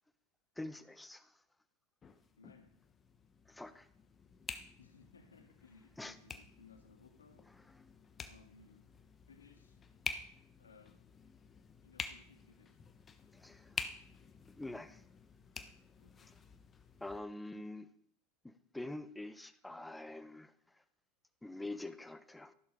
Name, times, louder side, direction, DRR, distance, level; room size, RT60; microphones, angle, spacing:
voice 1, 0.6-1.4 3.5-3.9 6.0-6.2 13.3-13.9 14.6-15.0 17.0-17.9 18.4-20.8 21.4-22.5, left 2 dB, 5° left, 1.2 m, -46 dB
sound 1, 2.0-17.2, left 5 dB, 25° left, 1.3 m, -49 dB
voice 2, 2.4-2.8 4.8-7.5 8.2-8.9 9.3-9.8 10.6-11.0 11.8-12.8 16.0-16.3, left 4 dB, 85° left, 2.2 m, -62 dB
14.0 x 12.0 x 5.2 m
figure-of-eight pair, 85°, 0 cm